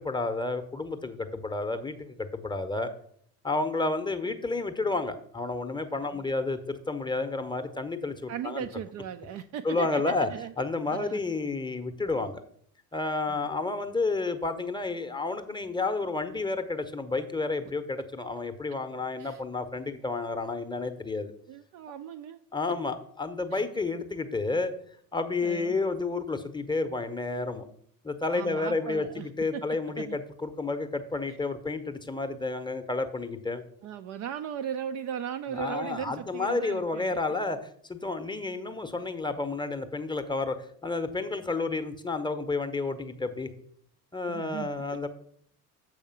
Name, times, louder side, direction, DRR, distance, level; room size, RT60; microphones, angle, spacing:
voice 1, 0.0-2.9 3.4-8.7 9.6-10.3 10.6-12.4 12.9-21.3 22.5-24.7 25.1-27.6 28.0-33.6 35.5-40.6 40.8-43.5 44.1-45.1, left 3 dB, 10° left, 9 dB, 0.8 m, -31 dB
voice 2, 8.3-10.5 10.9-11.2 13.3-13.6 19.2-19.4 21.5-22.4 23.5-23.6 25.4-25.8 28.3-29.6 30.0-30.2 31.3-31.4 33.8-37.2 44.3-44.7, right 9 dB, 40° right, 8 dB, 0.4 m, -37 dB
7.2 x 5.0 x 5.6 m, 0.64 s
figure-of-eight pair, 55°, 47 cm